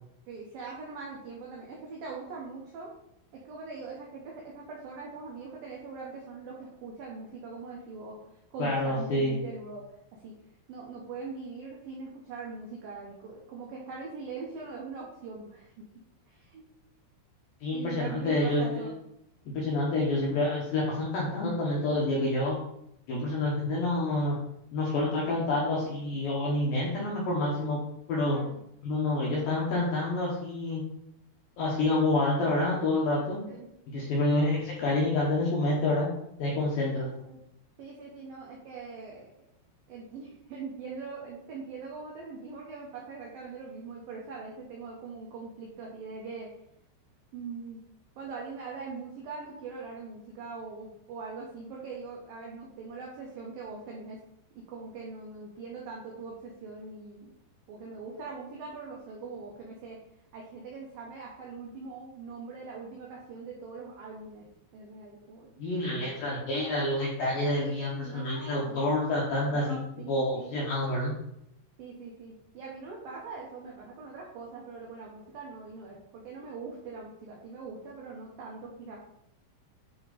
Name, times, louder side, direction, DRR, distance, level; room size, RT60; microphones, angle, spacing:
voice 1, 0.3-3.0 3.3-9.8 10.2-10.3 10.7-15.8 16.3-16.6 17.7-18.9 28.3-28.6 33.5-33.7 36.9-37.4 37.8-39.3 39.9-46.5 47.3-47.8 48.2-54.2 54.6-57.3 57.7-60.0 60.3-64.5 64.7-66.2 66.5-66.7 67.5-68.9 69.5-70.6 71.8-79.0, right 4 dB, 80° right, -3 dB, 2.0 m, -42 dB
voice 2, 8.6-9.4 17.6-18.9 19.5-22.6 23.1-24.4 24.7-27.8 28.1-28.4 28.8-30.8 31.6-33.4 33.9-36.1 36.4-37.1 65.6-69.8 70.1-71.1, left 2 dB, 70° left, -4 dB, 2.2 m, -28 dB
11.0 x 3.6 x 4.1 m, 0.78 s
omnidirectional pair, 5.7 m